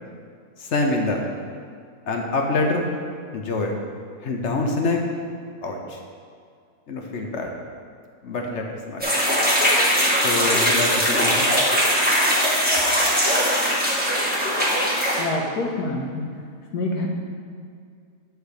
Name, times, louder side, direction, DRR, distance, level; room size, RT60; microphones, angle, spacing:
voice 1, 0.6-1.3 2.1-2.9 3.3-3.8 4.2-5.0 5.6-6.0 6.9-7.5 8.2-9.1 10.2-11.5, left 2 dB, 55° left, 2 dB, 1.0 m, -25 dB
sound 1, 9.0-15.2, equal, 5° right, 1.2 m, -20 dB
voice 2, 15.2-16.2 16.7-17.1, left 2 dB, 80° left, -1 dB, 1.7 m, -26 dB
9.5 x 3.5 x 6.5 m, 2.3 s
omnidirectional pair, 1.7 m